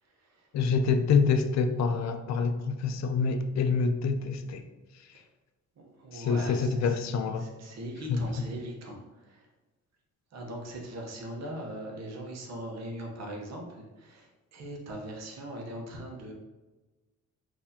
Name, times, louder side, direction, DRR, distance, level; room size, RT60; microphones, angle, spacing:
voice 1, 0.0-0.5 5.1-5.3 5.8-7.0 7.4-9.5 10.3-16.3, right 1 dB, 60° right, 1 dB, 0.9 m, -40 dB
voice 2, 0.5-4.6 6.1-7.5 8.1-8.2, left 5 dB, 65° left, 8 dB, 0.4 m, -26 dB
4.0 x 2.6 x 2.7 m, 1.1 s
cardioid pair, 90°, 30 cm